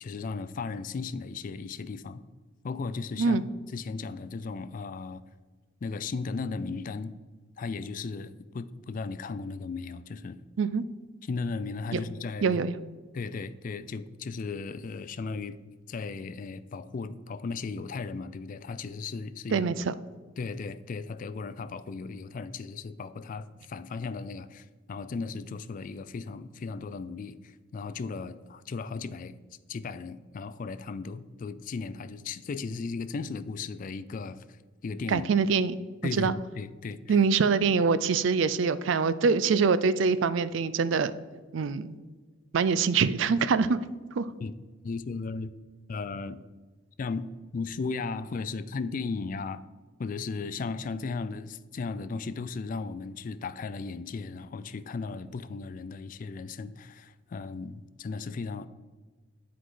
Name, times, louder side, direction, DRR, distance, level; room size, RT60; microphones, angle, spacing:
voice 1, 0.0-2.2 2.6-3.4 3.7-5.2 5.8-7.1 7.6-10.4 11.3-12.6 13.1-15.6 15.9-19.7 20.4-29.3 29.7-34.4 34.8-35.3 36.0-37.2 44.4-44.5 44.8-45.5 45.9-46.4 47.0-49.6 50.0-58.7, left 4 dB, 40° left, 13 dB, 0.3 m, -36 dB
voice 2, 12.4-12.7 19.5-19.9 35.1-35.7 36.2-36.3 37.1-41.2 41.5-42.0 42.5-43.8 44.1-44.3, right 5 dB, 65° right, 14 dB, 0.4 m, -24 dB
10.0 x 4.7 x 3.8 m, 1.3 s
head